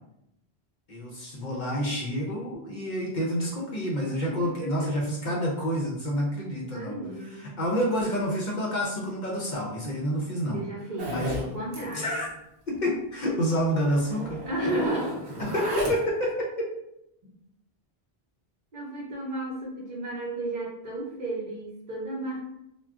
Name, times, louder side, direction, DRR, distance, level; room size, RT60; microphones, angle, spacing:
voice 1, 0.9-10.6 11.1-11.4 11.9-12.3 12.7-14.4 15.4-16.7, equal, 55° left, -3 dB, 0.6 m, -28 dB
voice 2, 4.0-4.9 6.7-7.5 10.5-12.2 14.5-15.2 18.7-22.4, right 1 dB, 50° right, -3 dB, 0.8 m, -33 dB
Zipper (clothing), 11.0-11.5 11.7-11.9 12.2-12.3 12.7-12.8 13.6-13.7 14.0-16.2, right 1 dB, 30° right, 0.5 m, -33 dB
2.3 x 2.2 x 3.5 m, 0.83 s
omnidirectional pair, 1.1 m